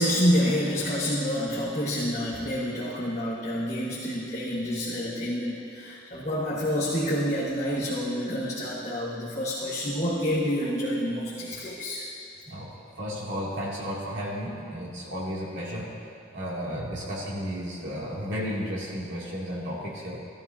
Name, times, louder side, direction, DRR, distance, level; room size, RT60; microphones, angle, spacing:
voice 1, 0.0-12.1, equal, 35° left, -8 dB, 1.5 m, -28 dB
voice 2, 13.0-15.9 16.3-20.2, equal, 75° right, -5 dB, 2.7 m, -33 dB
16.5 x 12.5 x 2.8 m, 2.5 s
head